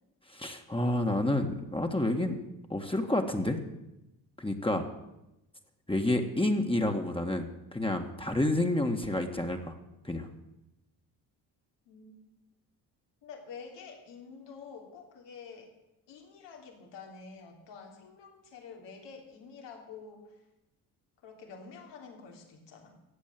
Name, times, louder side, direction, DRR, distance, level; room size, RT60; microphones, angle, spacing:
voice 1, 0.3-2.4 2.7-3.6 4.4-4.9 5.9-7.5 7.7-9.8 10.0-10.3, left 1 dB, 10° left, 4 dB, 1.9 m, -29 dB
voice 2, 11.8-12.2 13.2-15.7 16.1-20.4 21.2-23.0, left 5 dB, 75° left, 1 dB, 3.3 m, -48 dB
15.0 x 8.2 x 7.7 m, 0.92 s
supercardioid pair, 55°, 43 cm